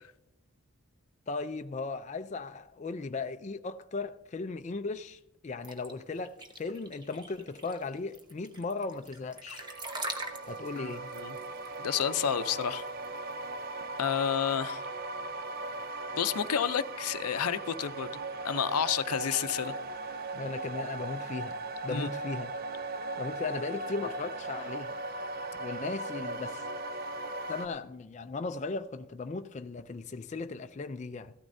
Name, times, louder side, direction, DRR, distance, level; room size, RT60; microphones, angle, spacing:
voice 1, 1.3-9.6 10.5-11.0 20.3-21.6 21.8-22.5 23.2-24.9 25.6-26.6 27.5-31.3, left 3 dB, 30° left, 0.3 m, -37 dB
sound 1, 5.6-13.3, right 2 dB, 20° right, 0.9 m, -42 dB
sound 2, 9.5-27.7, right 2 dB, 40° right, 0.5 m, -38 dB
voice 2, 10.8-11.4 11.8-12.8 14.0-14.8 16.2-19.7 21.9-22.1, left 8 dB, 90° left, 0.5 m, -30 dB
15.5 x 13.0 x 2.6 m
head